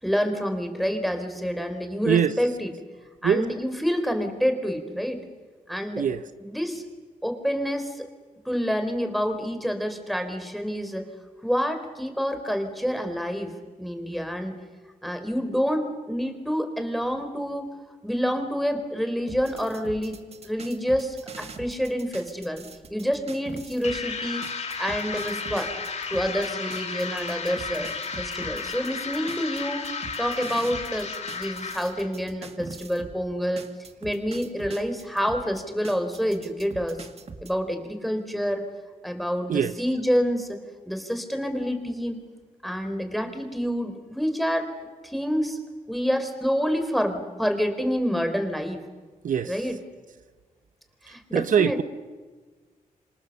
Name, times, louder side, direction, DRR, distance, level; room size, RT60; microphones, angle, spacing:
voice 1, 0.0-2.7 3.2-5.2 5.7-6.1 6.4-6.8 7.2-8.1 8.5-11.1 11.4-14.5 15.0-17.7 18.0-20.2 20.4-22.6 22.9-24.4 24.8-25.7 26.1-29.8 30.2-33.7 34.0-37.0 37.4-38.6 39.0-40.6 40.9-42.2 42.6-44.7 45.0-45.6 45.9-48.8 49.4-49.8 51.0-51.8, equal, ahead, 3.7 m, -27 dB
sound 1, 19.3-24.0 24.4-33.2 33.6-37.5, right 4 dB, 45° right, 1.9 m, -43 dB
sound 2, 23.8-32.1, left 5 dB, 50° left, 2.6 m, -33 dB
voice 2, 51.3-51.7, right 8 dB, 65° right, 0.8 m, -22 dB
27.0 x 26.0 x 7.2 m
cardioid pair, 110°, 15 cm